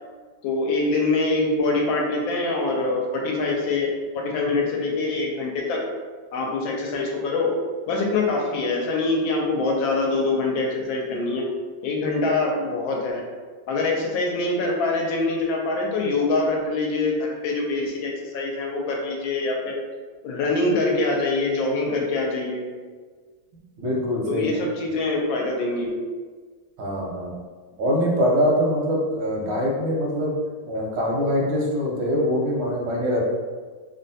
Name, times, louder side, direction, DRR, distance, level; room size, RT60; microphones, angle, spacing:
voice 1, 0.4-5.8 6.3-7.5 7.9-11.5 11.8-13.2 13.7-19.8 20.2-22.6 24.3-26.0, left 3 dB, 80° left, 0 dB, 1.3 m, -24 dB
voice 2, 23.8-24.6 26.8-27.4 27.8-30.3 30.7-33.3, equal, 85° right, -2 dB, 1.5 m, -23 dB
3.6 x 2.2 x 2.6 m, 1.5 s
omnidirectional pair, 2.2 m